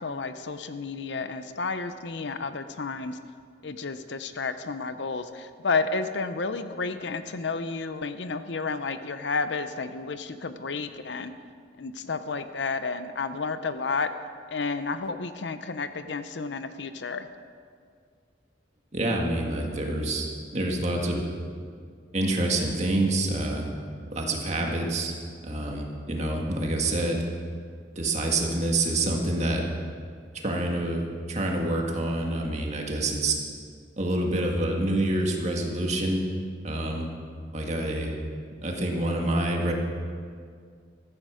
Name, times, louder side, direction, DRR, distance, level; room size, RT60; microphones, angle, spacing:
voice 1, 0.0-3.2 3.6-11.3 11.8-14.1 14.5-17.3, left 4 dB, 70° left, 10 dB, 0.7 m, -31 dB
voice 2, 18.9-20.3 20.5-21.2 22.1-23.7 24.1-25.1 25.4-27.2 28.0-29.6 30.4-31.0 31.3-33.3 34.0-36.2 36.6-37.1 37.5-38.1 38.6-39.7, right 1 dB, 35° right, 0 dB, 1.9 m, -27 dB
14.5 x 13.5 x 5.1 m, 2.1 s
head